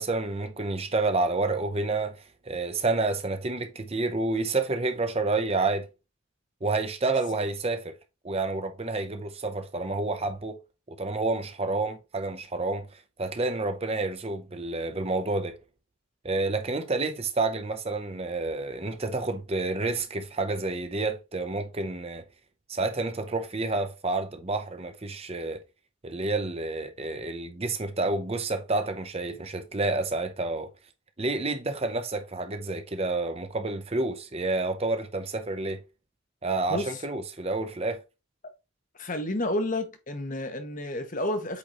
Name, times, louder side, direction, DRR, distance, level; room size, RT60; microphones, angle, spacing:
voice 1, 0.0-2.2 2.5-5.9 6.6-7.9 8.2-10.6 11.0-12.9 13.2-15.5 16.2-22.2 22.7-25.6 26.0-30.7 31.2-35.8 36.4-38.0, right 3 dB, 30° right, 0.7 m, -29 dB
voice 2, 36.7-37.0 39.0-41.6, left 1 dB, 35° left, 1.0 m, -30 dB
8.3 x 3.9 x 2.9 m
head